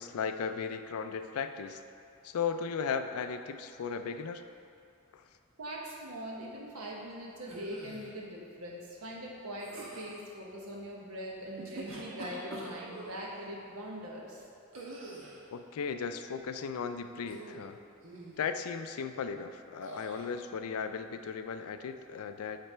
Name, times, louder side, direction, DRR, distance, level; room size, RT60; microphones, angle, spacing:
voice 1, 0.0-1.8 2.2-4.4 5.1-5.2 15.5-17.8 18.4-22.6, left 6 dB, 80° left, 8 dB, 0.4 m, -36 dB
voice 2, 5.6-14.5, equal, 85° right, -2 dB, 1.1 m, -42 dB
sound 1, 7.4-8.1 9.6-10.2 11.5-13.2 14.7-15.4 17.2-17.7 18.0-18.4 19.8-20.3, right 2 dB, 65° right, 1.1 m, -45 dB
8.8 x 3.4 x 4.3 m, 2.5 s
head